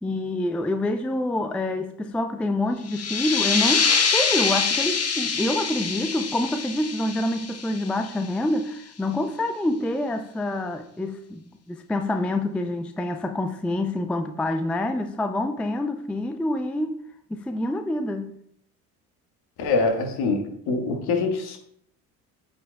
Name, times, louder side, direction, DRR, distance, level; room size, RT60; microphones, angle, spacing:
voice 1, 0.0-11.4 11.7-17.0 17.3-18.3, left 1 dB, 5° left, 0.4 m, -27 dB
sound 1, 2.9-8.3, left 5 dB, 35° left, 1.2 m, -25 dB
voice 2, 19.6-21.6, left 3 dB, 55° left, 1.6 m, -24 dB
9.1 x 5.3 x 2.2 m
figure-of-eight pair, 55°, 45 cm